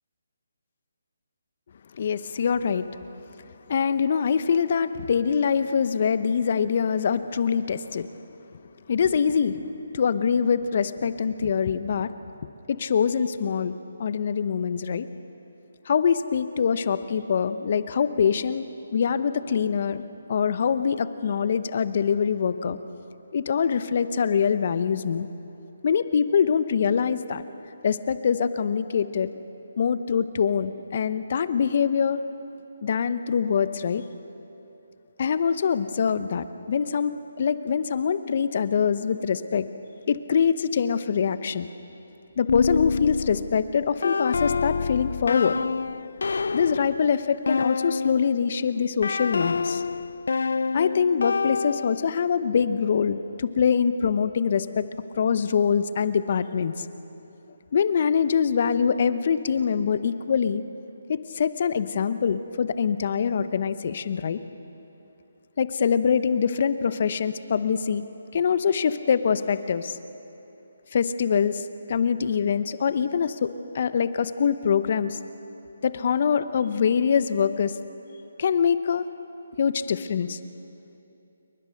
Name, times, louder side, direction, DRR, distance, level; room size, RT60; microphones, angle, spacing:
voice 1, 1.9-2.9 3.7-8.1 8.9-9.6 9.9-12.1 12.7-15.1 15.9-20.0 20.3-22.8 23.3-25.3 25.8-27.4 27.8-29.4 29.8-32.2 32.8-34.0 35.2-39.7 40.1-41.7 42.4-45.6 46.5-49.8 50.7-54.9 55.2-56.9 57.7-60.6 61.1-64.4 65.6-68.0 68.3-70.0 70.9-75.2 75.8-77.8 78.4-79.1 79.6-80.4, left 6 dB, 50° left, 13 dB, 1.0 m, -24 dB
sound 1, 42.5-48.4 49.0-52.2, left 4 dB, 70° left, 0.5 m, -27 dB
28.5 x 22.5 x 6.6 m, 2.9 s
figure-of-eight pair, 150°, 0 cm